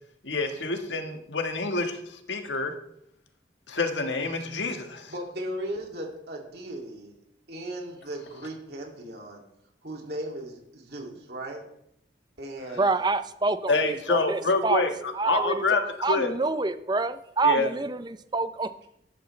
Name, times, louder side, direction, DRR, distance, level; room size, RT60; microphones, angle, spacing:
voice 1, 0.2-2.7 3.7-5.1 13.7-15.8 16.1-16.3 17.4-17.7, left 3 dB, 80° left, 6 dB, 1.5 m, -27 dB
voice 2, 5.1-7.1 7.5-9.4 9.8-11.6 12.4-12.9, right 1 dB, 60° right, 1 dB, 2.6 m, -37 dB
voice 3, 12.8-14.9 15.1-15.6 16.0-18.9, right 3 dB, 25° right, 12 dB, 0.6 m, -27 dB
13.0 x 11.5 x 3.3 m, 0.76 s
head